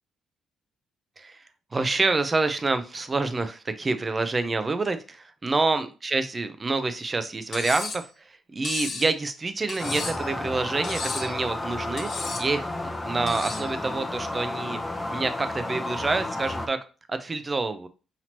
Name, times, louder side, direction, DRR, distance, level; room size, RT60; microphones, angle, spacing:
voice 1, 1.7-12.1 12.4-14.8 15.1-17.9, right 3 dB, 30° right, 10 dB, 0.6 m, -27 dB
Cutlery silverware, 7.5-8.0 8.6-9.1 9.7-10.3 10.8-11.3 12.0-12.5 13.3-13.7, left 4 dB, 55° left, 1.0 m, -34 dB
sound 1, 9.8-16.7, left 2 dB, 15° left, 0.8 m, -32 dB
5.9 x 2.8 x 2.9 m, 0.34 s
cardioid pair, 90°, 0 cm